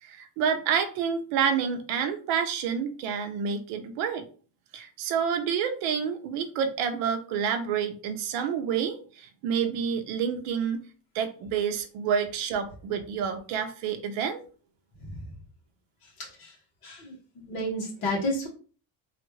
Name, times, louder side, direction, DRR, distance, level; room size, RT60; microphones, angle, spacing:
voice 1, 0.0-4.2 4.7-10.8 11.1-14.4, right 7 dB, 85° right, 6 dB, 0.8 m, -28 dB
voice 2, 15.0-15.3 16.0-16.6 16.8-18.5, left 1 dB, 45° left, -3 dB, 1.4 m, -32 dB
3.2 x 2.5 x 3.1 m, 0.39 s
cardioid pair, 175°, 49 cm